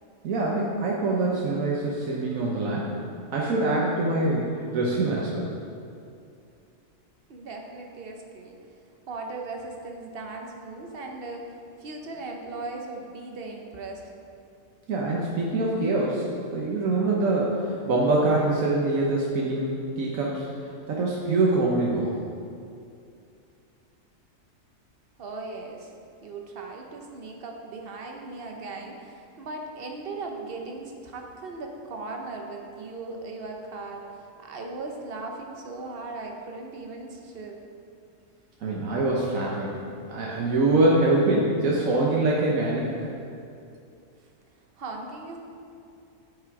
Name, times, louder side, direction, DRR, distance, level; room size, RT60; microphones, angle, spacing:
voice 1, 0.2-2.9 3.3-5.5 14.9-20.5 20.9-22.2 38.6-39.8 40.0-43.0, right 2 dB, 85° right, -4 dB, 1.3 m, -24 dB
voice 2, 7.3-8.6 9.1-11.5 11.8-14.0 25.2-25.9 26.2-34.1 34.4-37.6 44.8-45.4, right 3 dB, 50° right, 2 dB, 1.0 m, -38 dB
9.2 x 5.5 x 4.7 m, 2.6 s
omnidirectional pair, 1.4 m